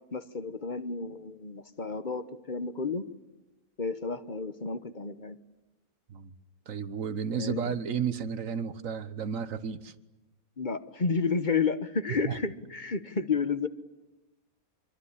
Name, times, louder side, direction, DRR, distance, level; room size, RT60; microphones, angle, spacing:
voice 1, 0.1-3.1 3.8-5.4 7.4-7.8 10.6-13.7, left 5 dB, 35° left, 12 dB, 1.2 m, -31 dB
voice 2, 6.7-9.9 12.2-12.4, right 7 dB, 65° right, 13 dB, 1.5 m, -32 dB
25.0 x 23.5 x 10.0 m, 1.0 s
omnidirectional pair, 1.5 m